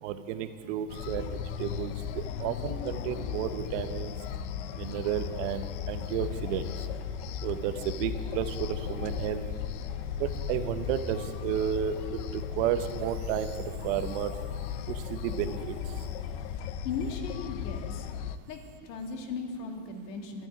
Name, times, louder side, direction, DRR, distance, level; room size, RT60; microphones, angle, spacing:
voice 1, 0.0-4.2 4.7-6.9 7.4-9.4 10.2-14.4 14.9-16.1, right 10 dB, 50° right, 10 dB, 0.9 m, -32 dB
sound 1, 0.9-18.4, left 8 dB, 50° left, 0.6 m, -36 dB
voice 2, 16.8-18.1 18.5-20.5, left 4 dB, 70° left, 3 dB, 2.3 m, -37 dB
13.0 x 9.4 x 9.3 m, 2.1 s
supercardioid pair, 160°, 48 cm